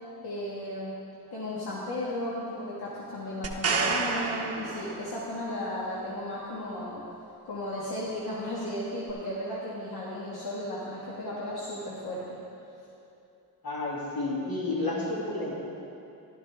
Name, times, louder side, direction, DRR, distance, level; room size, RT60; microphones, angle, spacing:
voice 1, 0.2-1.0 1.3-7.0 7.4-12.4, left 1 dB, 90° left, -7 dB, 1.8 m, -35 dB
sound 1, 3.4-5.4 9.1-9.2, right 4 dB, 40° right, 0.9 m, -30 dB
voice 2, 13.6-15.5, left 2 dB, 70° left, -4 dB, 2.6 m, -31 dB
12.5 x 12.0 x 3.5 m, 2.7 s
wide cardioid pair, 140°, 37 cm